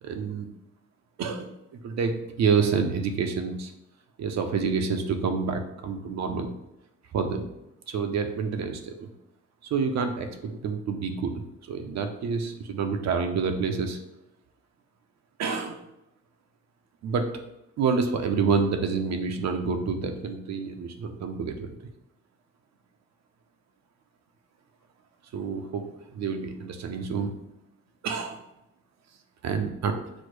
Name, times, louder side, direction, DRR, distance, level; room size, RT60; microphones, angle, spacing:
voice 1, 0.0-0.5 1.2-3.7 4.2-6.5 7.1-7.5 7.9-9.1 9.7-11.3 11.7-14.0 15.4-15.8 17.0-17.4 17.8-21.7 25.3-25.9 26.1-27.3 28.0-28.4 29.4-29.9, right 5 dB, 60° right, 6 dB, 0.6 m, -28 dB
6.3 x 2.1 x 3.1 m, 0.87 s
cardioid pair, 90°, 30 cm